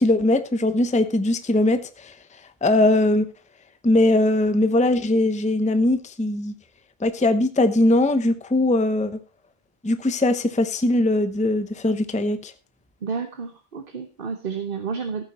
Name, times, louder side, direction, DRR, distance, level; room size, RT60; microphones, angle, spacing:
voice 1, 0.0-2.1 2.6-3.2 3.8-6.5 7.0-9.2 9.8-12.5, left 2 dB, 5° left, 11 dB, 0.8 m, -20 dB
voice 2, 13.0-15.2, right 5 dB, 45° right, 8 dB, 1.2 m, -30 dB
15.0 x 9.1 x 4.2 m, 0.32 s
omnidirectional pair, 1.4 m